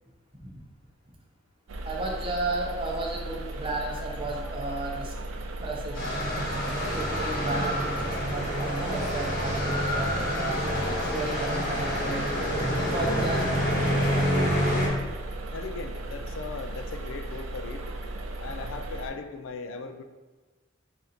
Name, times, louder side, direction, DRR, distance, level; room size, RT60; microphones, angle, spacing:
sound 1, 1.7-19.1, right 2 dB, 85° right, 0.4 m, -36 dB
voice 1, 1.8-5.1 5.6-6.0 6.9-10.7 11.1-12.4 12.8-13.4 14.1-14.5, right 2 dB, 25° right, -1 dB, 0.7 m, -33 dB
sound 2, 5.9-14.9, equal, 45° left, 1.0 m, -27 dB
voice 2, 15.5-17.9 18.4-20.0, left 4 dB, 80° left, 7 dB, 0.3 m, -38 dB
3.9 x 2.6 x 4.2 m, 1.3 s
head